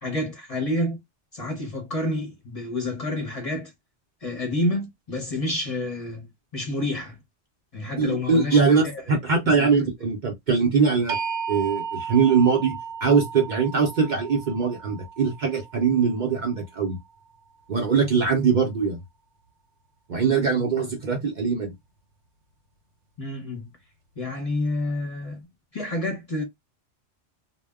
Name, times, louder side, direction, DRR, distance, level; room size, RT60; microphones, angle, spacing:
voice 1, 0.0-1.0 1.3-3.7 4.2-7.2 7.7-9.2 9.4-9.9 23.2-23.7 24.2-25.5 25.7-26.4, left 1 dB, 35° left, 0.7 m, -29 dB
voice 2, 8.0-11.2 11.5-17.0 17.7-19.0 20.1-21.7, right 5 dB, 50° right, 0.6 m, -22 dB
sound 1, 11.1-17.1, right 6 dB, 80° right, 0.9 m, -35 dB
2.1 x 2.1 x 3.3 m
omnidirectional pair, 1.2 m